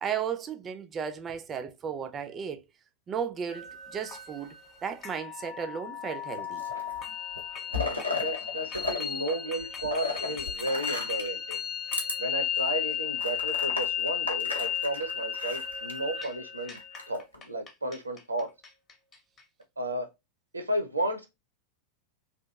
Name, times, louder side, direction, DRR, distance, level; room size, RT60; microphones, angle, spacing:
voice 1, 0.0-2.6 3.1-4.5 4.8-6.6, right 7 dB, 25° right, 0.3 m, -34 dB
sound 1, 3.5-19.4, left 9 dB, 25° left, 0.6 m, -34 dB
sound 2, 6.3-7.0 7.3-9.0 9.2-11.4 11.9-12.1 12.6-12.7 13.2-16.0 16.7-17.3, left 3 dB, 85° left, 0.6 m, -35 dB
voice 2, 7.7-11.6 12.2-16.8 17.1-18.5 19.8-20.1 20.5-21.3, right 1 dB, 80° right, 0.5 m, -33 dB
2.7 x 2.4 x 2.3 m
figure-of-eight pair, 90°, 0 cm